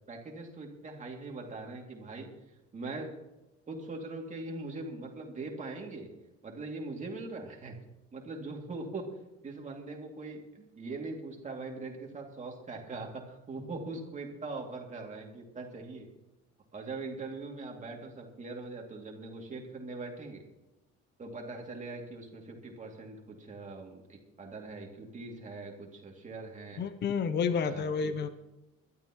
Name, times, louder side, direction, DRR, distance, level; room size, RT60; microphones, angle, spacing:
voice 1, 0.1-2.3 2.7-3.1 3.7-6.1 6.4-7.7 8.1-9.0 9.4-16.1 16.7-20.4 21.2-26.8 27.5-28.1, right 3 dB, 25° right, 0 dB, 2.5 m, -41 dB
voice 2, 26.8-28.3, left 6 dB, 35° left, 11 dB, 0.7 m, -30 dB
22.0 x 12.5 x 3.1 m, 0.97 s
cardioid pair, 165°, 29 cm